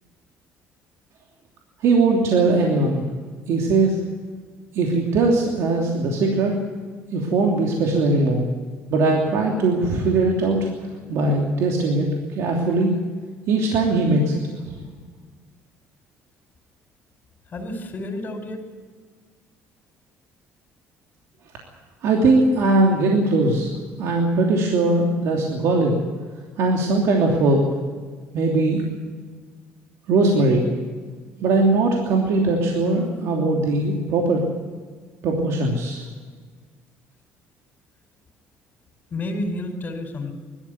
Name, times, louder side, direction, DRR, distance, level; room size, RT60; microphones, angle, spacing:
voice 1, 1.8-3.0 3.5-4.0 4.7-6.5 7.1-8.4 8.9-10.7 11.1-12.9 13.5-14.7 22.0-23.7 24.0-26.0 26.6-27.7 28.3-28.8 30.1-30.7 31.4-34.4 35.2-36.0, right 2 dB, 70° right, 0 dB, 3.0 m, -20 dB
voice 2, 17.5-18.6 39.1-40.3, left 1 dB, 35° left, 5 dB, 4.9 m, -30 dB
20.5 x 13.5 x 9.6 m, 1.5 s
cardioid pair, 110°, 5 cm